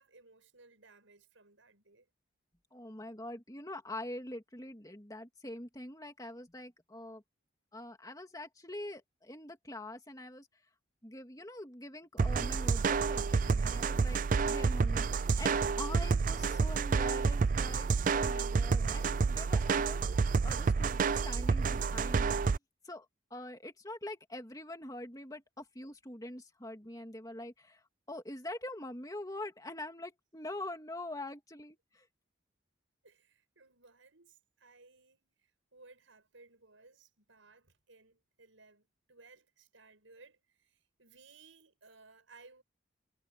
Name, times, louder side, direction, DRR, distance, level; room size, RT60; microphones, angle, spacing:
voice 1, 0.0-2.1 33.0-42.6, right 3 dB, 90° right, 7.1 m, -60 dB
voice 2, 2.7-7.2 7.7-10.5 11.0-17.9 18.1-20.0 20.4-22.4 22.8-27.8 28.1-32.1, left 1 dB, 20° left, 2.5 m, -44 dB
sound 1, 12.2-22.6, right 5 dB, 45° right, 0.4 m, -29 dB
head